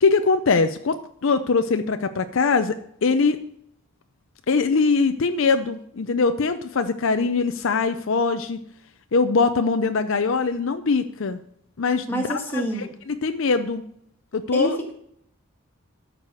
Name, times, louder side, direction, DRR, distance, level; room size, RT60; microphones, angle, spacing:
voice 1, 0.0-2.7 3.0-3.4 4.5-8.6 9.1-11.4 11.8-13.8 14.3-14.8, left 4 dB, 60° left, 9 dB, 0.5 m, -22 dB
voice 2, 12.1-12.9 14.5-14.9, right 1 dB, 10° left, 0 dB, 1.9 m, -27 dB
13.0 x 4.9 x 6.9 m, 0.72 s
head